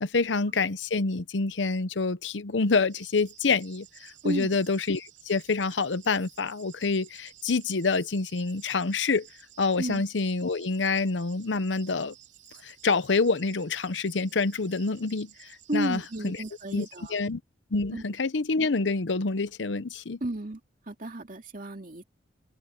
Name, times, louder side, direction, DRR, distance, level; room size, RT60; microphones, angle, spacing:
voice 1, 0.0-9.3 9.6-12.1 12.6-16.4 16.7-17.4 17.7-20.2, left 4 dB, 80° left, 0.8 m, -27 dB
sound 1, 2.9-17.2, right 13 dB, 85° right, 3.3 m, -54 dB
voice 2, 4.2-4.6 9.8-10.0 15.7-17.2 17.9-18.0 20.2-20.6 20.9-22.0, right 1 dB, 50° right, 2.5 m, -33 dB
head